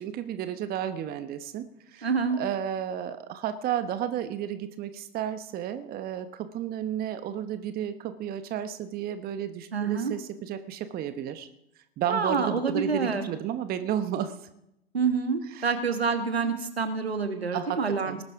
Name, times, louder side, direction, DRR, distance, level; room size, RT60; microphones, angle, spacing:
voice 1, 0.0-2.1 2.4-11.5 12.0-14.4 15.4-15.7 17.5-18.2, right 10 dB, 30° right, 11 dB, 1.0 m, -32 dB
voice 2, 2.0-2.4 9.7-10.1 12.1-13.2 14.9-18.2, right 5 dB, 85° right, 8 dB, 1.7 m, -27 dB
19.5 x 11.5 x 3.6 m, 0.85 s
figure-of-eight pair, 90°, 30 cm